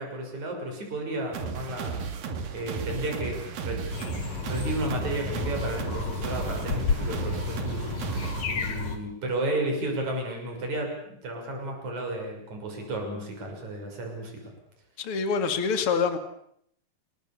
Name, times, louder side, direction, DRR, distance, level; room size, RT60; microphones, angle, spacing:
voice 1, 0.0-2.0 2.5-3.8 4.2-11.0 11.2-14.4, right 1 dB, 50° right, 2 dB, 7.5 m, -33 dB
sound 1, 1.3-8.4, right 5 dB, 70° right, 3.8 m, -34 dB
sound 2, 3.9-9.0, left 5 dB, 60° left, 3.9 m, -32 dB
voice 2, 15.0-16.2, left 5 dB, 40° left, 7 dB, 2.8 m, -25 dB
29.0 x 21.0 x 7.1 m, 0.70 s
omnidirectional pair, 4.2 m